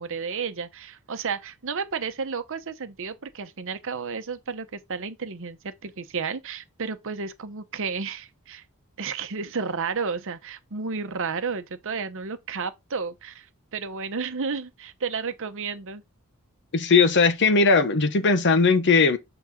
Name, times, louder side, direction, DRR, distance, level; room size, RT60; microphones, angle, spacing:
voice 1, 0.0-8.6 9.0-13.5 13.7-16.0, right 5 dB, 60° right, 0.8 m, -32 dB
voice 2, 16.7-19.2, left 4 dB, 55° left, 0.8 m, -19 dB
7.0 x 3.9 x 3.7 m
head